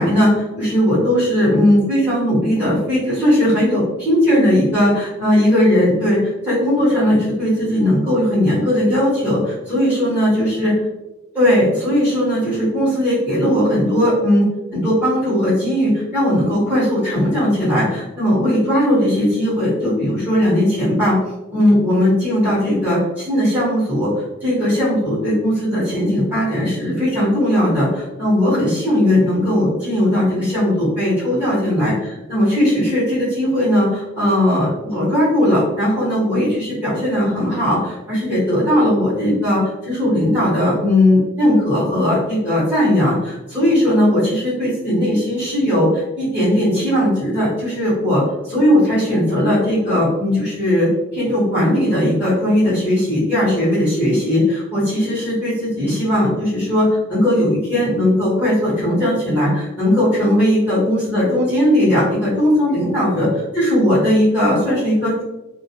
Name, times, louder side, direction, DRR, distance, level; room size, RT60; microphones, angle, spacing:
voice 1, 0.0-10.7 11.3-21.2 21.5-24.1 24.4-31.9 32.3-48.2 48.5-65.2, left 1 dB, 10° right, -13 dB, 1.0 m, -18 dB
2.3 x 2.0 x 2.8 m, 1.0 s
head